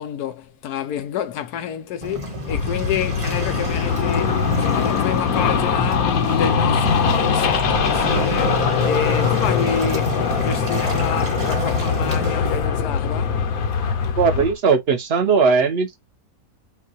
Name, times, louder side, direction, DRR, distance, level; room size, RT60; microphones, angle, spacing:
voice 1, 0.0-13.4, left 8 dB, 90° left, 1.2 m, -29 dB
Waves surf, 2.0-12.3, equal, 25° right, 1.1 m, -30 dB
sound 1, 2.4-14.5, left 6 dB, 70° left, 1.2 m, -22 dB
sound 2, 5.8-6.0 6.2-6.6 6.9-12.7, right 10 dB, 75° right, 1.1 m, -34 dB
voice 2, 14.1-16.0, right 5 dB, 50° right, 1.0 m, -18 dB
5.4 x 2.3 x 2.8 m
omnidirectional pair, 1.6 m